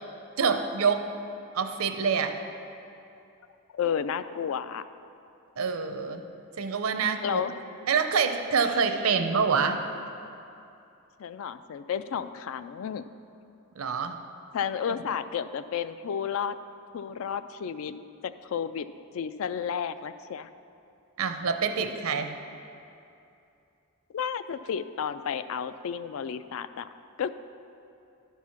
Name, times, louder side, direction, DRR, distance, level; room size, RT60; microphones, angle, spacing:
voice 1, 0.4-1.1 1.5-2.4 5.6-6.2 6.6-7.4 7.9-9.8 13.8-14.2 21.2-22.3, right 5 dB, 80° right, 7 dB, 0.6 m, -26 dB
voice 2, 3.7-4.8 7.2-7.5 11.2-13.0 14.5-16.6 16.9-18.9 19.1-20.5 24.1-26.9 27.2-27.3, left 7 dB, 70° left, 13 dB, 0.3 m, -32 dB
11.5 x 4.7 x 5.7 m, 2.7 s
head